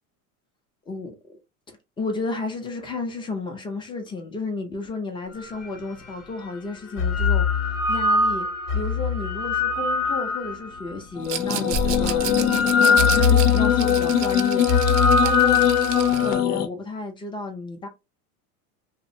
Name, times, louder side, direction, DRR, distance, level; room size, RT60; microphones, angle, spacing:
voice 1, 2.0-7.4 7.9-8.5 8.7-14.8 15.2-17.9, left 3 dB, 10° left, 0.3 m, -32 dB
sound 1, 5.6-5.7 6.7-11.0 11.7-16.4, left 4 dB, 35° left, 0.7 m, -22 dB
sound 2, 11.2-16.7, left 10 dB, 75° left, 0.6 m, -22 dB
Rattle, 11.2-16.3, right 11 dB, 50° right, 0.5 m, -33 dB
2.6 x 2.0 x 2.5 m
supercardioid pair, 120°, 45 cm